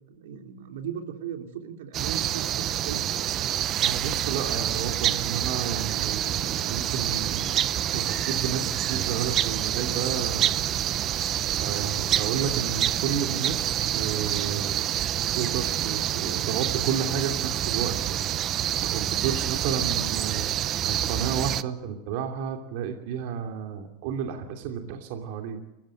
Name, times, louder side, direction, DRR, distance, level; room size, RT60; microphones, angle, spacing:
voice 1, 0.1-3.3, right 8 dB, 85° right, 5 dB, 3.4 m, -38 dB
sound 1, 1.9-21.6, right 11 dB, 30° right, 0.8 m, -27 dB
voice 2, 3.8-10.7 11.6-14.9 15.3-18.4 18.8-20.5 20.8-25.6, right 7 dB, 60° right, 4 dB, 2.8 m, -32 dB
29.5 x 15.0 x 7.8 m, 0.95 s
supercardioid pair, 150°, 0 cm